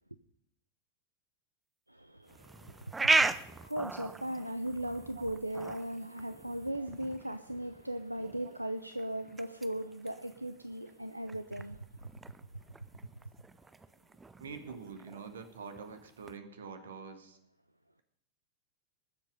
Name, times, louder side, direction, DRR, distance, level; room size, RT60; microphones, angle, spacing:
voice 1, 1.9-11.8, right 1 dB, 85° right, 10 dB, 0.6 m, -38 dB
sound 1, 2.3-16.4, right 3 dB, 10° right, 0.6 m, -38 dB
voice 2, 14.4-17.4, right 5 dB, 65° right, 8 dB, 1.7 m, -46 dB
19.5 x 7.6 x 5.4 m, 0.75 s
figure-of-eight pair, 90°, 0 cm